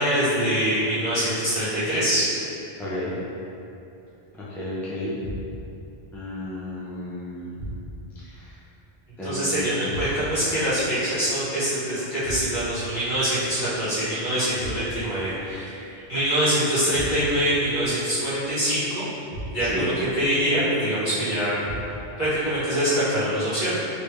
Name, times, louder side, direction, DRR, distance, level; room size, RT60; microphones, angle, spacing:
voice 1, 0.0-2.2 9.2-19.1 19.5-21.6 22.2-23.7, equal, 50° left, -14 dB, 1.8 m, -24 dB
voice 2, 2.8-3.1 4.5-5.2 6.1-7.6 8.2-8.5 9.2-10.2 19.6-19.8, left 1 dB, ahead, -10 dB, 0.4 m, -33 dB
sound 1, 5.2-5.8 7.5-8.2 9.9-10.5 12.2-12.9 14.6-15.2 16.9-17.5 19.3-19.9 21.6-22.2, equal, 85° left, 1.2 m, -36 dB
3.3 x 2.7 x 3.4 m, 2.8 s
omnidirectional pair, 1.0 m